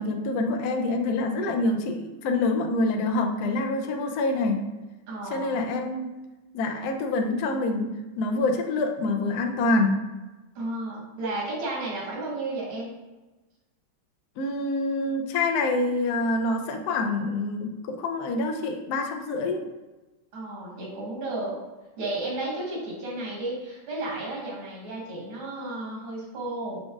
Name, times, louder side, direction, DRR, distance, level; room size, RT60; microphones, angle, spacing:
voice 1, 0.0-4.6 5.3-6.1 6.5-7.9 8.2-10.0 14.4-19.6, left 2 dB, 75° left, 4 dB, 0.9 m, -26 dB
voice 2, 5.1-5.6 10.6-12.9 20.3-21.6 22.0-26.8, right 2 dB, 90° right, -3 dB, 2.0 m, -33 dB
6.1 x 3.5 x 2.4 m, 1.1 s
omnidirectional pair, 2.2 m